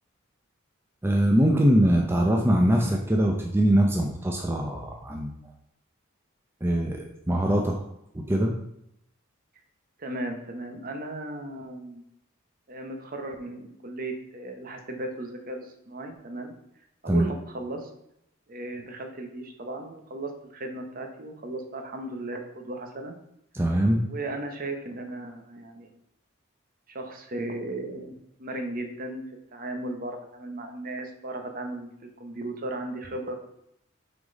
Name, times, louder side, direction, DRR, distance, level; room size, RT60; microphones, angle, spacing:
voice 1, 1.0-5.3 6.6-7.8 8.1-8.5 17.1-17.3 23.5-24.0, right 1 dB, 10° right, 0 dB, 0.6 m, -22 dB
voice 2, 10.0-12.0 12.7-16.5 17.0-17.9 18.5-23.1 23.7-26.0 26.9-29.2 29.5-33.5, right 2 dB, 45° right, 5 dB, 0.9 m, -36 dB
6.0 x 4.0 x 5.2 m, 0.78 s
head